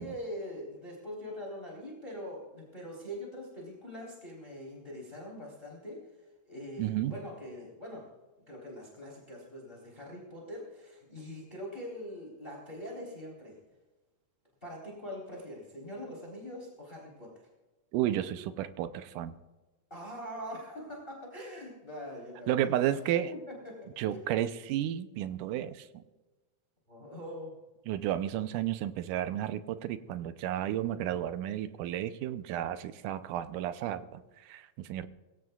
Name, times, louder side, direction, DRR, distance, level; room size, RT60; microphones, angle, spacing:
voice 1, 0.0-8.1 8.5-13.6 14.6-17.5 19.9-22.7 23.3-24.2 26.9-27.6, equal, 15° left, -2 dB, 3.9 m, -43 dB
voice 2, 6.8-7.1 17.9-19.3 22.5-23.3 24.0-25.9 27.9-35.1, right 12 dB, 90° right, 11 dB, 2.3 m, -32 dB
22.5 x 17.0 x 2.4 m, 1.2 s
omnidirectional pair, 3.6 m